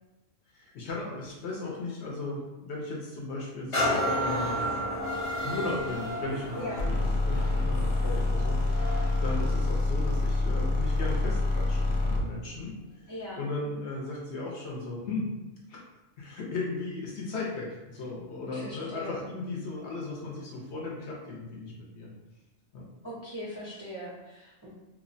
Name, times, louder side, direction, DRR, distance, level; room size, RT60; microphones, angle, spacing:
voice 1, 0.5-4.6 5.4-13.1 13.4-15.3 15.7-15.8 16.2-22.1 22.7-22.9, left 3 dB, 65° left, -3 dB, 0.8 m, -36 dB
sound 1, 3.7-11.3 11.9-12.0, equal, 35° left, 0.6 m, -33 dB
voice 2, 6.5-6.9 13.1-13.4 18.5-19.2 23.0-24.7, equal, 20° right, -9 dB, 0.4 m, -40 dB
sound 2, 6.8-12.3, left 2 dB, 90° left, 1.0 m, -27 dB
2.9 x 2.0 x 2.5 m, 1.1 s
omnidirectional pair, 1.3 m